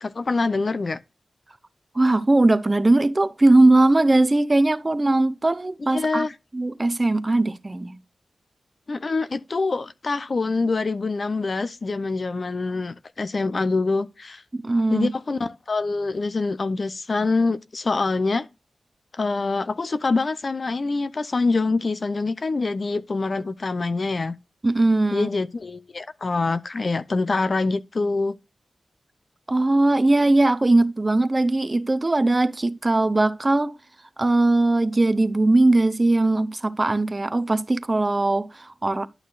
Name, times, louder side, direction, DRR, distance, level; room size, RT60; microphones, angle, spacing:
voice 1, 0.0-1.0 5.9-6.3 8.9-14.4 14.9-18.5 19.1-24.4 25.1-28.4, left 3 dB, 55° left, 0.6 m, -25 dB
voice 2, 1.9-6.3 6.5-8.0 14.5-15.1 24.6-25.3 29.5-33.7 34.2-39.1, right 2 dB, 30° right, 0.6 m, -20 dB
11.5 x 6.4 x 2.4 m
cardioid pair, 65°, 0 cm